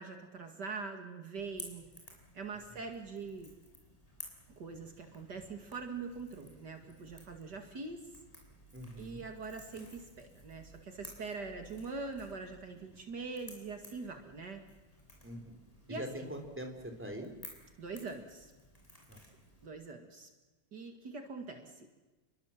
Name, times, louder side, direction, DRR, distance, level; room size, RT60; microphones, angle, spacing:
voice 1, 0.0-1.8 2.3-3.5 4.6-8.0 9.0-14.6 15.9-16.3 17.8-18.5 19.6-20.3 20.7-21.9, right 4 dB, 65° right, 5 dB, 2.7 m, -43 dB
Crackle / Crack, 1.3-19.7, equal, 20° left, 6.3 m, -55 dB
voice 2, 8.7-9.2 15.2-15.6 15.9-17.3 19.1-19.2, equal, 5° right, 4 dB, 3.9 m, -43 dB
29.5 x 23.0 x 7.5 m, 1.2 s
omnidirectional pair, 2.0 m